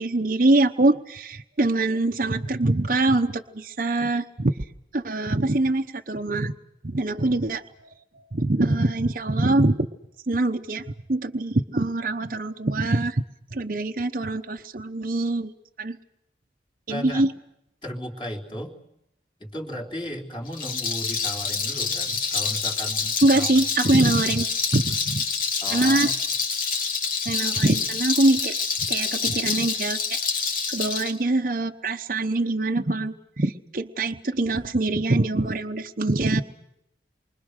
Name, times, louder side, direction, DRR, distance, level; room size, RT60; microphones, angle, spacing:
voice 1, 0.0-4.6 4.9-6.5 6.8-7.9 8.1-9.9 10.3-13.2 13.5-15.5 15.8-16.0 16.9-17.3 23.2-24.5 24.7-25.2 25.7-26.1 27.2-30.2 30.7-36.4, right 2 dB, 50° right, 3 dB, 0.9 m, -24 dB
voice 2, 16.9-17.2 17.8-18.8 19.4-23.5 23.8-24.1 25.6-26.1, equal, 25° left, 1 dB, 3.4 m, -35 dB
Rattle, 20.5-31.1, left 5 dB, 50° left, 2.4 m, -27 dB
28.0 x 24.5 x 6.5 m, 0.80 s
head